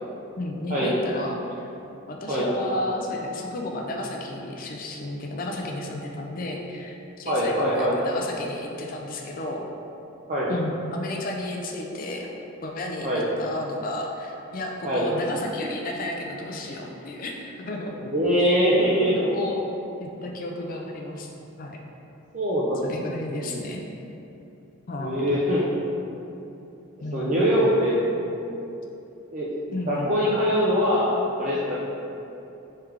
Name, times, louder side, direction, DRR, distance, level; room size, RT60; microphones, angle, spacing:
voice 1, 0.4-1.7 2.1-9.6 10.5-12.3 12.6-17.9 19.0-19.6 20.0-21.3 21.6-21.8 22.8-23.8 24.9-25.3 27.0-27.5 29.7-30.1, left 1 dB, 40° left, 1 dB, 0.4 m, -32 dB
voice 2, 7.3-8.0 10.3-10.5 13.0-13.2 14.8-15.0 17.9-19.1 22.3-22.9 23.4-23.6 25.0-25.8 27.1-28.0 29.3-29.5 29.9-31.8, equal, 35° right, -7 dB, 0.4 m, -23 dB
3.3 x 3.2 x 3.5 m, 2.9 s
head